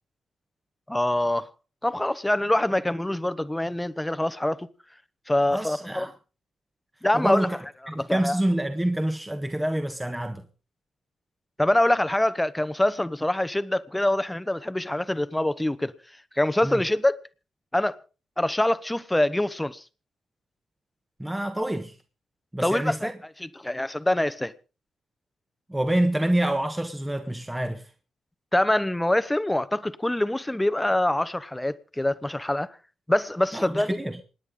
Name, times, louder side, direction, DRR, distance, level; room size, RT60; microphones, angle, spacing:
voice 1, 0.9-1.5 1.8-4.7 5.3-6.1 7.0-7.6 8.0-8.4 11.6-15.9 16.4-17.2 17.7-18.0 18.4-19.8 22.6-23.1 23.4-24.5 28.5-32.8 33.1-34.0, left 1 dB, 10° left, 1.0 m, -24 dB
voice 2, 5.5-6.1 7.1-7.6 7.9-10.4 16.6-16.8 21.2-21.9 22.5-23.1 25.7-27.8 33.5-34.2, right 1 dB, 10° right, 1.5 m, -27 dB
27.0 x 9.5 x 3.8 m
supercardioid pair, 60°, 0 cm